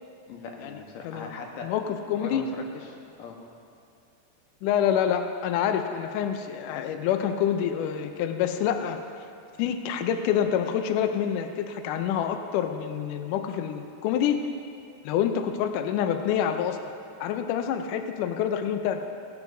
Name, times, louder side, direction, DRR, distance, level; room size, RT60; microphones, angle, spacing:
voice 1, 0.3-1.7 2.2-3.4, left 5 dB, 70° left, 1 dB, 2.7 m, -40 dB
voice 2, 1.6-2.4 4.6-9.0 9.6-14.4 15.0-16.8 17.2-19.0, left 9 dB, 90° left, 6 dB, 1.8 m, -27 dB
18.0 x 17.5 x 2.7 m, 2.5 s
omnidirectional pair, 4.6 m